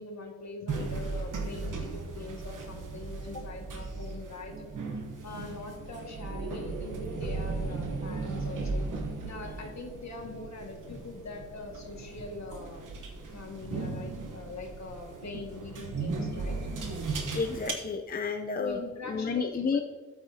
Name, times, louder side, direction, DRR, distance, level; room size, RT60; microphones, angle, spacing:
voice 1, 0.0-4.6 4.9-8.9 9.2-12.9 13.3-16.6 18.6-19.8, left 3 dB, 65° left, 1 dB, 1.9 m, -42 dB
sound 1, 0.7-17.7, right 3 dB, 85° right, 1.2 m, -37 dB
voice 2, 17.3-18.8 19.1-19.8, left 5 dB, 30° left, 4 dB, 0.6 m, -31 dB
13.0 x 8.8 x 2.8 m, 1.5 s
cardioid pair, 55°, 30 cm